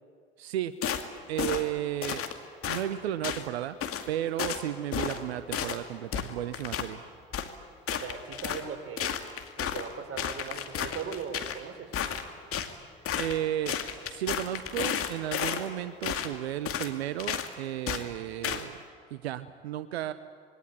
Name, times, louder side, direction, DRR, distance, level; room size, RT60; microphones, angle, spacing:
voice 1, 0.4-0.8 1.3-2.2 2.7-3.8 4.1-7.0 13.2-18.8 19.1-20.1, right 12 dB, 85° right, 13 dB, 0.8 m, -33 dB
sound 1, 0.8-1.1 1.4-1.7 2.0-2.3 2.6-2.8 3.2-3.4 3.8-4.1 4.4-4.6 4.9-5.2 5.5-5.8 6.1-6.9 7.3-7.5 7.9-8.6 9.0-9.9 10.2-11.6 11.9-12.7 13.0-13.4 13.7-15.6 16.0-16.3 16.6-16.9 17.2-17.5 17.9-18.0 18.4-18.6, left 8 dB, 45° left, 2.3 m, -32 dB
voice 2, 7.9-9.2 9.6-11.9, right 6 dB, 45° right, 6 dB, 3.9 m, -39 dB
27.0 x 22.0 x 9.8 m, 2.1 s
hypercardioid pair, 65°, 31 cm